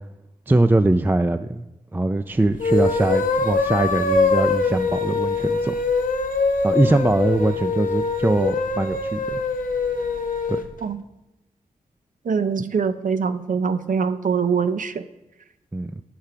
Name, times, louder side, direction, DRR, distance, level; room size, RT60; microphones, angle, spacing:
voice 1, 0.5-1.6 1.9-5.8 6.6-9.4 10.5-10.6 15.7-16.0, right 2 dB, 15° right, 9 dB, 0.3 m, -22 dB
sound 1, 2.5-10.7, left 3 dB, 60° left, 0.8 m, -23 dB
voice 2, 12.2-15.0, right 6 dB, 60° right, 11 dB, 0.5 m, -23 dB
5.9 x 5.5 x 6.6 m, 0.94 s
cardioid pair, 40°, 15 cm